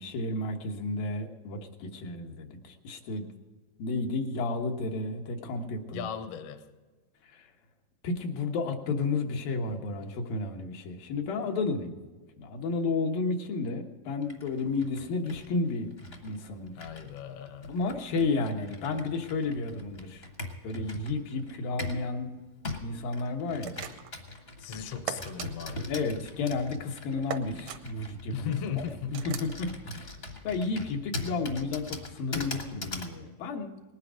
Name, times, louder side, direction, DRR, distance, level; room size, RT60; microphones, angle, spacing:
voice 1, 0.0-3.3 3.8-6.1 7.3-7.5 8.0-12.0 12.4-15.9 16.2-16.8 17.7-20.3 20.6-22.3 22.8-23.8 25.9-28.8 29.1-30.1 30.4-33.7, left 3 dB, 90° left, 3.1 m, -32 dB
voice 2, 5.9-6.7 16.7-17.8 24.6-25.9 28.3-29.1, left 8 dB, 70° left, 1.5 m, -37 dB
Computer keyboard, 14.2-22.1 22.6-33.2, left 2 dB, 55° left, 0.6 m, -41 dB
sound 1, 23.6-24.2 25.1-25.5 27.3-27.8 29.1-29.5, right 10 dB, 85° right, 1.4 m, -37 dB
19.5 x 9.8 x 5.1 m
omnidirectional pair, 3.9 m